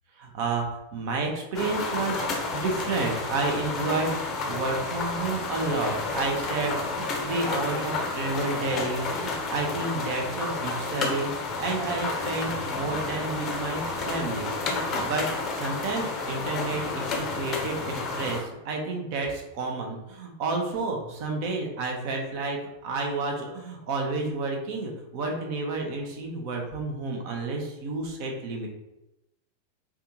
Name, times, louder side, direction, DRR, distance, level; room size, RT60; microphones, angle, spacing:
voice 1, 0.2-2.2 2.5-15.3 15.5-28.7, right 3 dB, 45° right, 1 dB, 0.7 m, -31 dB
heavy rain decreasing, 1.5-18.4, left 3 dB, 30° left, 0.6 m, -31 dB
3.4 x 2.4 x 2.9 m, 0.92 s
figure-of-eight pair, 90°, 0 cm